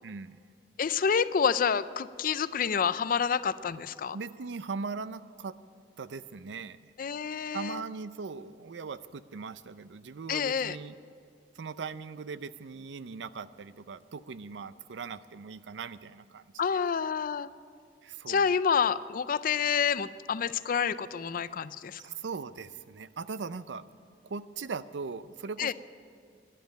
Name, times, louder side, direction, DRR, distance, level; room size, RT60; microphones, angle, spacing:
voice 1, 0.0-0.4 4.1-5.5 6.0-6.9 7.5-10.9 11.5-16.8 18.0-18.5 22.0-23.8 24.2-25.7, right 4 dB, 80° right, 15 dB, 0.5 m, -39 dB
voice 2, 0.8-4.2 7.0-7.8 10.3-10.8 16.6-17.5 18.3-22.0 25.6-25.7, left 6 dB, 50° left, 16 dB, 0.4 m, -28 dB
12.5 x 11.0 x 9.2 m, 2.3 s
head